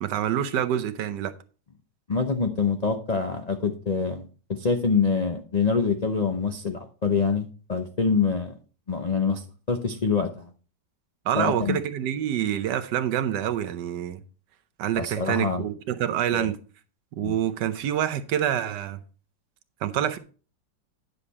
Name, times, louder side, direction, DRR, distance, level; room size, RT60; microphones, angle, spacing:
voice 1, 0.0-1.3 11.3-14.2 14.8-16.6 17.1-19.0 19.8-20.2, right 10 dB, 75° right, 1.3 m, -26 dB
voice 2, 2.1-4.3 4.6-8.5 8.9-9.4 9.7-10.5 11.3-11.8 15.0-15.7 16.3-16.5 17.2-17.4, left 5 dB, 70° left, 0.4 m, -25 dB
9.8 x 6.7 x 4.1 m
omnidirectional pair, 2.0 m